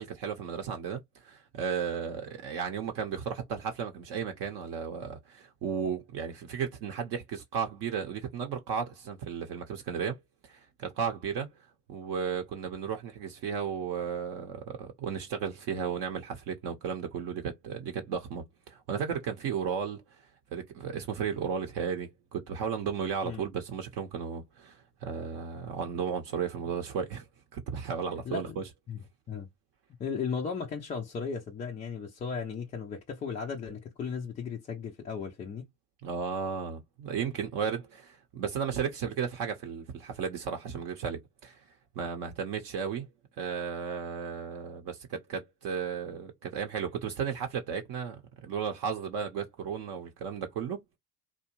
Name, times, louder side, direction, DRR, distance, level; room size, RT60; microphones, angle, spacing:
voice 1, 0.0-11.5 11.9-20.0 20.5-27.3 27.5-28.6 36.0-41.6 42.0-43.1 43.4-50.8, right 7 dB, 45° right, 0.8 m, -34 dB
voice 2, 28.1-28.6 28.9-29.0 29.3-29.5 30.0-35.7, left 6 dB, 15° left, 0.3 m, -36 dB
2.6 x 2.2 x 2.9 m
hypercardioid pair, 75°, 48 cm